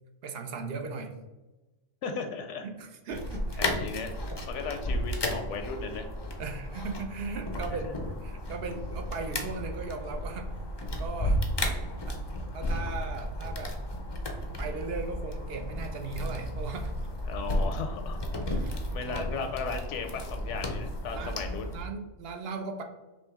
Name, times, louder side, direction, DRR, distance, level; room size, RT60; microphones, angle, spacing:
voice 1, 0.2-1.1 2.6-3.9 6.4-10.5 11.0-11.5 12.1-12.2 12.5-13.8 14.4-16.9 18.4-19.3 21.1-21.4 21.7-22.8, right 4 dB, 65° right, 5 dB, 0.7 m, -38 dB
voice 2, 2.0-2.7 3.6-4.1 4.5-6.1 7.8-7.9 17.3-18.2 18.9-21.7, left 5 dB, 80° left, 5 dB, 0.9 m, -36 dB
sound 1, 3.1-21.8, left 1 dB, 40° left, 0.4 m, -33 dB
5.0 x 2.9 x 3.5 m, 1.1 s
omnidirectional pair, 1.3 m